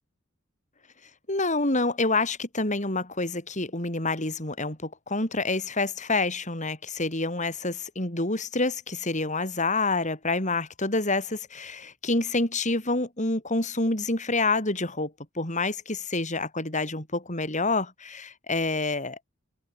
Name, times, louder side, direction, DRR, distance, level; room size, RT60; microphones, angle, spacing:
voice 1, 1.3-19.2, left 2 dB, 35° left, 6.1 m, -27 dB
open air
head